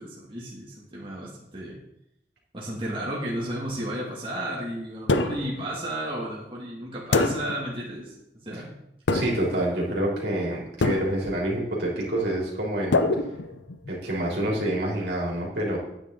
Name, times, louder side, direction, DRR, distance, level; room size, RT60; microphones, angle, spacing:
voice 1, 0.0-1.8 2.5-8.1 8.4-8.7, right 1 dB, 30° right, -5 dB, 2.3 m, -33 dB
sound 1, 5.1-5.6 7.1-7.7 9.1-9.6 10.8-11.4 12.9-13.9, left 2 dB, 85° left, 0.7 m, -25 dB
voice 2, 9.1-13.0 13.9-15.8, right 1 dB, 70° right, -4 dB, 3.4 m, -27 dB
11.0 x 9.4 x 4.0 m, 0.83 s
head